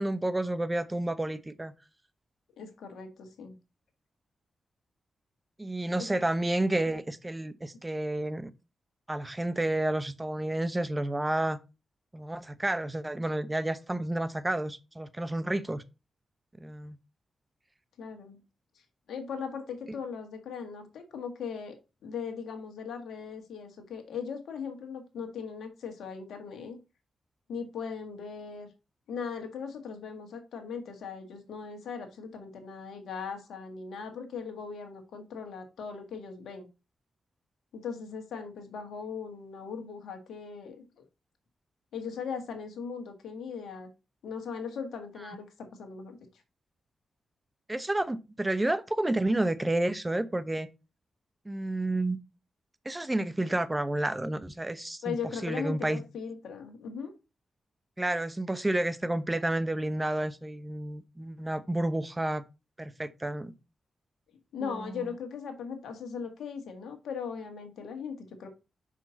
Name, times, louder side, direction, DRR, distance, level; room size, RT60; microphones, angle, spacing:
voice 1, 0.0-1.7 5.6-8.5 9.1-11.6 12.1-15.8 16.6-17.0 47.7-50.7 51.5-52.2 52.8-55.2 55.4-56.0 58.0-62.4 62.8-63.5 64.6-65.0, right 1 dB, 20° right, 0.8 m, -30 dB
voice 2, 2.6-3.6 6.0-6.1 18.0-18.4 19.1-21.7 22.0-26.8 27.5-28.7 29.1-36.7 37.7-41.0 41.9-43.9 44.2-46.2 55.0-57.1 64.5-68.5, left 6 dB, 80° left, 1.5 m, -39 dB
5.6 x 5.0 x 3.9 m
supercardioid pair, 40°, 0 cm